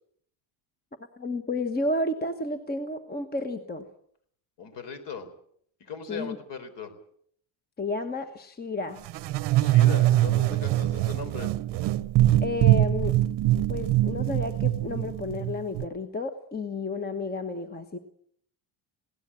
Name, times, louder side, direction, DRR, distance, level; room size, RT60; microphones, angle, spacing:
voice 1, 1.2-3.9 6.1-6.4 7.8-9.0 12.4-13.2 13.7-18.0, left 2 dB, 20° left, 9 dB, 1.2 m, -31 dB
voice 2, 4.6-5.3 5.8-6.9 9.6-11.5, left 5 dB, 55° left, 11 dB, 4.3 m, -39 dB
sound 1, 9.1-15.8, right 14 dB, 55° right, 0.8 m, -23 dB
20.5 x 18.0 x 8.5 m, 0.64 s
cardioid pair, 145°, 50 cm